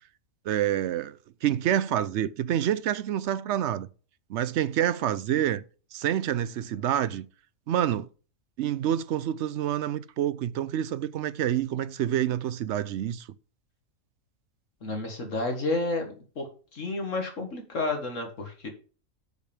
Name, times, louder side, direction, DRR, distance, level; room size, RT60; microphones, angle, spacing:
voice 1, 0.5-3.9 4.3-5.6 5.9-7.3 7.7-8.1 8.6-13.3, right 11 dB, 65° right, 0.8 m, -27 dB
voice 2, 14.8-16.5 16.7-18.7, left 2 dB, 65° left, 1.9 m, -31 dB
6.4 x 5.2 x 6.8 m
omnidirectional pair, 1.4 m